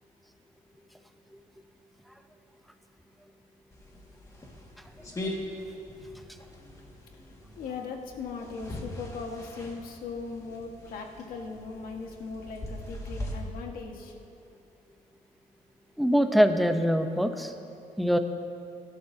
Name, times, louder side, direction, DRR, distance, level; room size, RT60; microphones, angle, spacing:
sound 1, 3.7-13.3, left 1 dB, 20° left, 1.8 m, -41 dB
voice 1, 7.6-14.1, left 4 dB, 80° left, 2 dB, 1.6 m, -39 dB
voice 2, 16.0-17.5 18.0-18.2, equal, ahead, 6 dB, 0.7 m, -23 dB
23.0 x 12.0 x 2.8 m, 2.6 s
cardioid pair, 135°, 15 cm